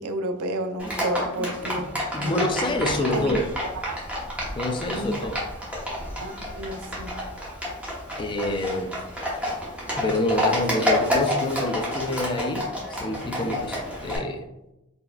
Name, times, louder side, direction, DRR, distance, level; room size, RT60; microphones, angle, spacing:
voice 1, 0.0-1.9 2.2-2.5 3.1-3.3 3.9-4.0 4.9-5.1 6.2-7.1, right 1 dB, 80° right, 7 dB, 0.5 m, -31 dB
Livestock farm animals working animals, 0.8-14.2, left 1 dB, 5° right, 0.9 m, -29 dB
voice 2, 1.8-3.5 4.5-5.4 8.2-9.0 10.0-14.5, left 1 dB, 20° left, 6 dB, 0.3 m, -27 dB
4.3 x 3.2 x 2.3 m, 0.92 s
head